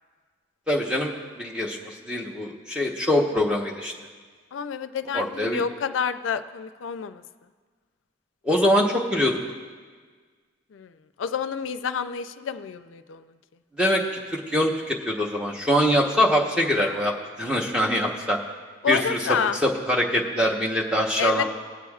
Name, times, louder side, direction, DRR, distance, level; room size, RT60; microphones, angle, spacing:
voice 1, 0.7-3.9 5.1-5.6 8.4-9.4 13.8-18.4 18.9-19.2 19.6-21.4, equal, 5° right, -2 dB, 1.0 m, -23 dB
voice 2, 4.5-7.2 10.7-13.3 18.8-19.6 21.2-21.4, left 6 dB, 90° left, 11 dB, 0.4 m, -29 dB
21.5 x 8.3 x 2.4 m, 1.5 s
head